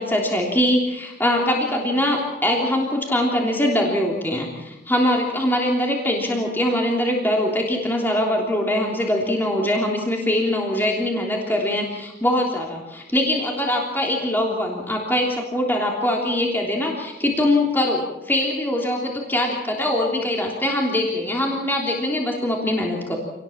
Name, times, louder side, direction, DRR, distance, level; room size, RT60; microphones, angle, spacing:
voice 1, 0.0-23.2, left 1 dB, 10° left, -1 dB, 3.2 m, -22 dB
27.5 x 19.5 x 7.3 m, 0.97 s
head